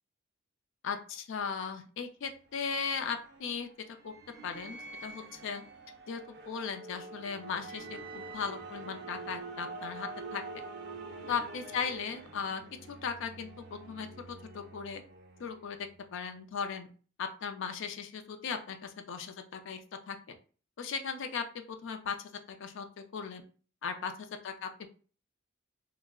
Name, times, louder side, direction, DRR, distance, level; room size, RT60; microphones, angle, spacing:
voice 1, 0.8-4.1 4.4-5.6 6.1-10.4 11.3-12.6 12.9-15.0 15.4-16.9 17.2-19.8 20.1-20.4 20.8-23.4 23.8-24.9, left 6 dB, 65° left, 6 dB, 0.4 m, -37 dB
sound 1, 2.2-16.0, right 3 dB, 55° right, 0.4 m, -46 dB
2.3 x 2.0 x 3.5 m, 0.39 s
head